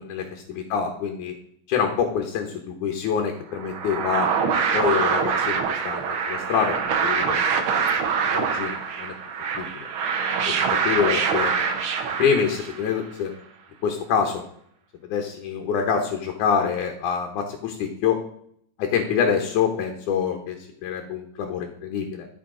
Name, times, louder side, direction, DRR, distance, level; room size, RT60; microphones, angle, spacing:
voice 1, 0.0-1.3 1.7-4.3 4.7-7.4 7.8-7.9 8.3-9.1 9.6-9.9 10.5-10.6 10.8-11.5 12.2-13.3 13.8-14.4 15.1-18.2 18.8-20.6 20.8-22.3, left 7 dB, 85° left, 2 dB, 2.5 m, -26 dB
sound 1, 3.6-13.0, right 6 dB, 65° right, 1.4 m, -24 dB
14.0 x 5.7 x 3.7 m, 0.69 s
omnidirectional pair, 3.4 m